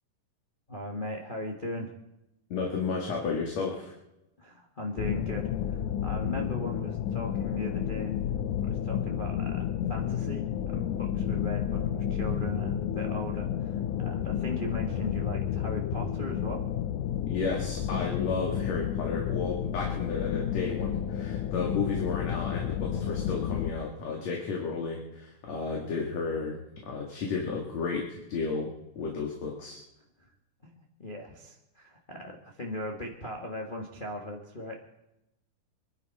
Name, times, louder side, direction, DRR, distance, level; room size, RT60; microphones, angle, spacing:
voice 1, 0.7-1.9 4.4-8.1 8.6-16.6 30.2-30.3 30.6-35.0, left 1 dB, 25° left, 0 dB, 1.0 m, -38 dB
voice 2, 2.5-3.9 17.2-29.8, left 4 dB, 55° left, -1 dB, 3.1 m, -33 dB
sound 1, 5.0-23.7, left 9 dB, 75° left, 2.1 m, -31 dB
25.5 x 11.5 x 4.2 m, 0.90 s
omnidirectional pair, 3.9 m